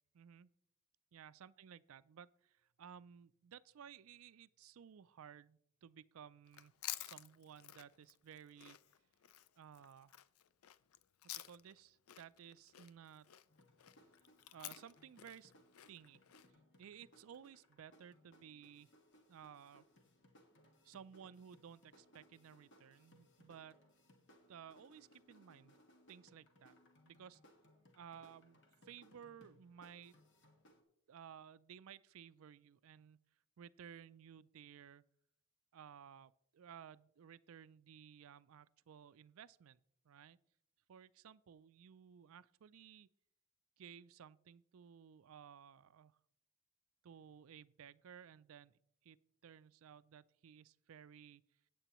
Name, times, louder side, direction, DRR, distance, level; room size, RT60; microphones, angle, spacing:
voice 1, 0.1-0.5 1.1-6.7 7.0-8.8 9.6-10.2 11.3-13.3 14.5-15.5 15.9-16.2 16.8-18.9 19.3-19.9 20.8-23.8 24.5-25.8 26.1-26.7 27.0-27.4 27.9-28.6 28.8-30.2 31.1-33.2 33.6-35.0 35.7-40.4 40.9-43.1 43.8-46.2 47.0-49.2 49.4-51.4, right 8 dB, 70° right, 0.4 m, -57 dB
Chewing mastication, 6.5-11.8 12.1-16.5, left 13 dB, 85° left, 0.5 m, -51 dB
sound 1, 13.5-30.8, left 1 dB, 55° left, 1.5 m, -68 dB
15.5 x 9.1 x 3.0 m
head